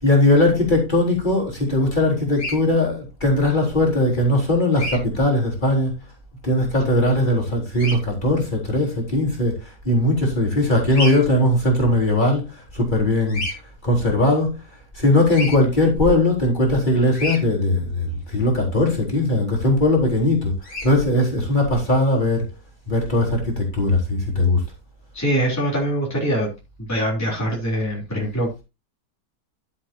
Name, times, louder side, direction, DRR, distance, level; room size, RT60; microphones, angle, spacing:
voice 1, 0.0-5.9 6.4-9.5 9.8-12.4 12.7-13.4 13.8-14.5 15.0-20.5 20.8-22.5 22.9-24.6, left 1 dB, 25° left, 4.1 m, -19 dB
Bird vocalization bird call bird song, 2.3-2.6 4.7-5.0 7.7-8.0 10.9-11.2 13.3-13.5 15.3-15.6 17.1-17.4 20.6-20.9, left 1 dB, 55° left, 4.0 m, -29 dB
voice 2, 25.1-26.5 26.9-28.6, right 1 dB, 10° left, 3.4 m, -23 dB
13.0 x 7.8 x 2.8 m
omnidirectional pair, 1.8 m